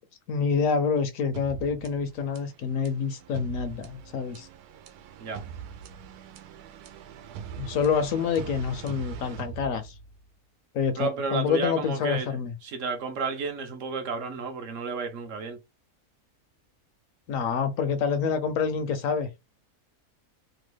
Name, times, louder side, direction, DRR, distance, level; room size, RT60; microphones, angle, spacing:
voice 1, 0.3-4.5 7.6-9.9 10.7-12.5 17.3-19.3, left 6 dB, 70° left, 0.9 m, -27 dB
sound 1, 1.3-10.3, right 8 dB, 85° right, 1.1 m, -42 dB
voice 2, 11.0-15.6, right 4 dB, 65° right, 0.9 m, -32 dB
3.0 x 2.2 x 3.2 m
omnidirectional pair, 1.6 m